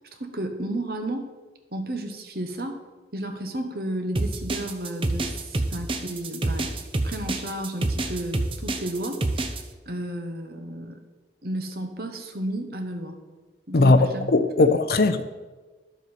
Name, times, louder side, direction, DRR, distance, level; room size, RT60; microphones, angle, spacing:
voice 1, 0.1-1.3 1.7-2.8 3.1-9.4 9.9-11.0 11.4-13.2 13.7-14.2 14.6-14.7, right 1 dB, 55° right, 1.1 m, -32 dB
sound 1, 4.2-9.6, right 2 dB, 30° right, 0.6 m, -27 dB
voice 2, 13.7-15.3, left 2 dB, 55° left, 0.6 m, -19 dB
11.5 x 7.3 x 4.2 m
head